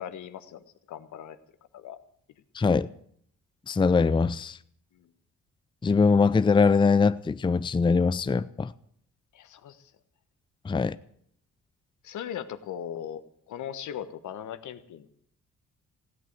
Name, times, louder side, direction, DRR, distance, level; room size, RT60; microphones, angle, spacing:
voice 1, 0.0-1.4 1.7-2.0 4.9-5.1 9.3-9.9 12.0-15.1, left 9 dB, 75° left, 1.3 m, -39 dB
voice 2, 2.5-2.9 3.7-4.6 5.8-8.7 10.6-11.0, left 4 dB, 15° left, 0.5 m, -22 dB
16.5 x 8.5 x 9.3 m
cardioid pair, 90°, 30 cm